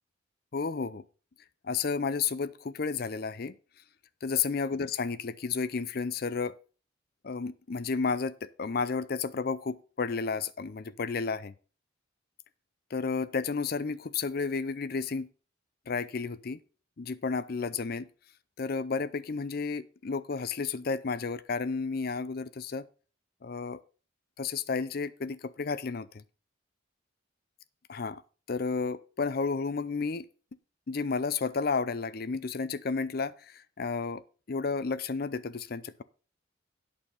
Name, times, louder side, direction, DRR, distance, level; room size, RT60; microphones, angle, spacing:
voice 1, 0.5-1.0 1.6-3.6 4.2-6.6 7.2-11.5 12.9-15.3 15.9-16.6 17.0-18.1 18.6-22.9 23.4-23.8 24.4-26.2 27.9-28.2 28.5-30.3 30.9-34.2 34.5-36.0, left 4 dB, 50° left, 16 dB, 0.5 m, -32 dB
8.7 x 6.6 x 5.4 m, 0.38 s
head